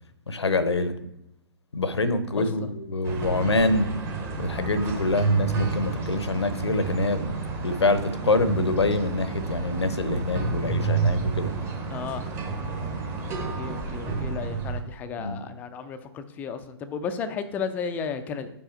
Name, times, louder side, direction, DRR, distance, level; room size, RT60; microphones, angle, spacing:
voice 1, 0.3-1.0 1.7-3.9 4.4-7.2 7.6-11.5 15.2-15.4, left 2 dB, 80° left, 12 dB, 0.7 m, -25 dB
voice 2, 2.4-2.7 11.9-12.3 13.6-18.5, left 6 dB, 10° left, 9 dB, 0.4 m, -33 dB
sound 1, 3.0-14.8, right 4 dB, 20° right, 0.9 m, -29 dB
5.5 x 4.7 x 4.3 m, 0.82 s
figure-of-eight pair, 125°, 14 cm